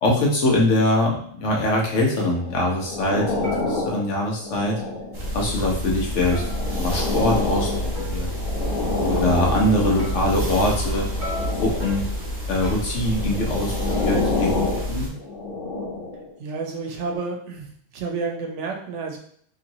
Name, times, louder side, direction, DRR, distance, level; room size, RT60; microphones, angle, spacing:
voice 1, 0.0-4.8 5.3-6.4 6.7-8.3 9.0-11.1 11.5-12.1 12.5-15.1, left 1 dB, 85° left, -2 dB, 1.2 m, -23 dB
sound 1, 2.2-2.3 2.8-3.1 3.4-4.7 5.2-5.3 6.3-8.3 10.0-10.9 11.2-13.1 13.9-15.0, left 1 dB, 45° right, 1.0 m, -40 dB
sound 2, 2.3-5.4 6.0-10.3 11.0-12.1 13.0-16.3 17.0-17.2, left 3 dB, 50° left, 1.0 m, -29 dB
sound 3, 5.1-15.1, equal, 25° right, 0.6 m, -28 dB
voice 2, 16.4-17.7 17.9-19.2, right 4 dB, 85° right, 2 dB, 1.0 m, -30 dB
3.1 x 2.9 x 2.7 m, 0.62 s
omnidirectional pair, 1.2 m